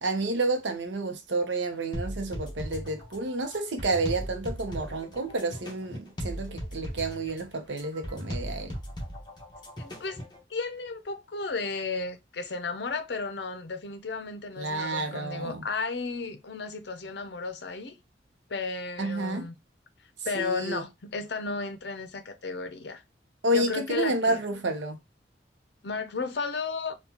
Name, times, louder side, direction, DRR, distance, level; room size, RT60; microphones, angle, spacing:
voice 1, 0.0-8.8 14.6-15.6 19.0-19.5 20.3-20.9 23.4-25.0, right 2 dB, 80° right, 0.7 m, -30 dB
sound 1, 1.9-10.4, equal, 25° left, 0.9 m, -37 dB
voice 2, 9.8-10.2 10.5-18.0 18.5-19.6 20.2-23.0 23.5-24.6 25.8-27.0, left 4 dB, 65° left, 0.6 m, -34 dB
3.7 x 2.3 x 2.8 m
head